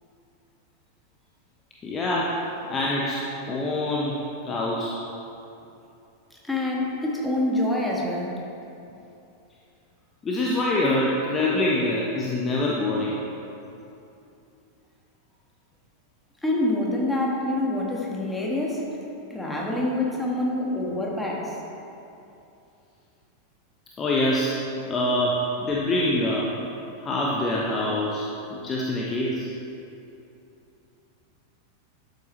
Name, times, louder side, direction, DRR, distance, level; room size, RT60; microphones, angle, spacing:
voice 1, 1.8-2.4 2.7-3.2 3.5-4.2 4.4-5.0 10.2-13.2 20.3-20.5 24.0-24.6 24.9-26.5 27.0-28.2 28.5-29.5, left 1 dB, 20° left, -4 dB, 1.0 m, -25 dB
voice 2, 6.3-8.3 16.4-18.9 19.3-21.6, left 1 dB, 5° left, -3 dB, 1.7 m, -26 dB
12.0 x 7.9 x 3.2 m, 2.8 s
figure-of-eight pair, 90°, 0 cm